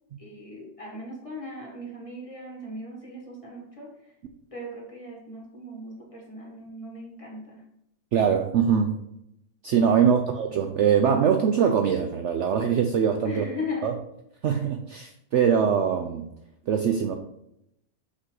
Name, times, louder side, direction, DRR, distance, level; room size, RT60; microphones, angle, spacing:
voice 1, 0.2-4.1 4.5-7.6 10.0-10.2 13.2-13.9 14.4-14.6, left 2 dB, 20° left, -1 dB, 1.6 m, -38 dB
voice 2, 8.1-9.0 9.6-13.4 13.8-13.9 14.4-16.3 16.7-17.1, right 7 dB, 65° right, 5 dB, 0.8 m, -22 dB
5.8 x 5.5 x 3.9 m, 0.79 s
omnidirectional pair, 1.6 m